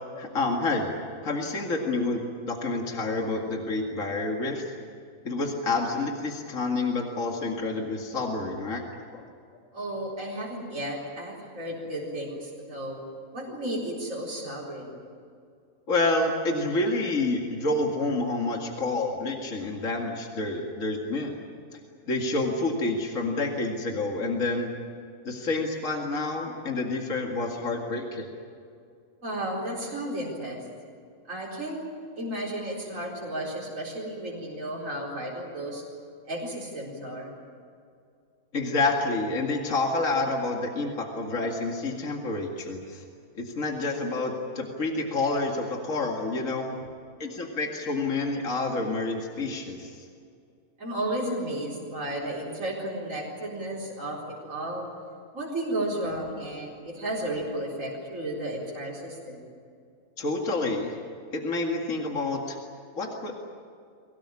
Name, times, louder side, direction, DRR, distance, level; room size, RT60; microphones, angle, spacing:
voice 1, 0.1-0.9 1.2-4.7 5.2-8.8 9.1-9.2 15.9-21.4 22.1-24.7 25.2-28.3 38.5-43.0 43.4-46.7 47.2-50.1 60.2-60.9 61.3-62.6 63.0-63.4, left 2 dB, 55° left, 1 dB, 2.5 m, -28 dB
voice 2, 9.7-13.0 13.3-15.0 29.2-30.6 31.3-31.8 32.2-35.8 36.3-37.3 50.8-54.2 54.5-54.9 55.3-59.5, right 1 dB, 55° right, -5 dB, 4.7 m, -33 dB
24.0 x 18.0 x 9.8 m, 2.3 s
omnidirectional pair, 1.6 m